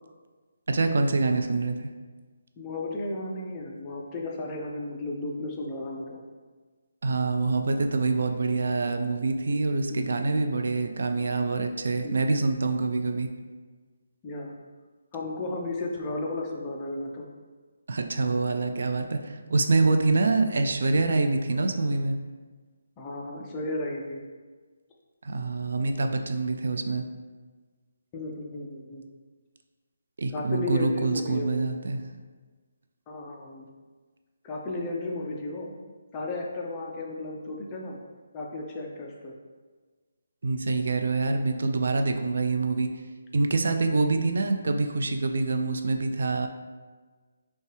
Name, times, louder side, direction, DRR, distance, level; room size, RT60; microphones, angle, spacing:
voice 1, 0.7-1.9 7.0-13.3 17.9-22.2 25.2-27.0 30.2-32.0 40.4-42.9 43.3-46.5, right 3 dB, 60° right, 6 dB, 0.3 m, -25 dB
voice 2, 2.6-6.2 9.9-10.1 12.0-12.2 14.2-14.5 15.1-17.2 23.0-24.2 28.1-29.0 30.3-31.6 33.1-33.7 34.4-35.7 36.1-38.0 38.3-39.3, left 2 dB, 15° left, -1 dB, 0.4 m, -34 dB
5.3 x 2.2 x 3.3 m, 1.4 s
hypercardioid pair, 170°, 0 cm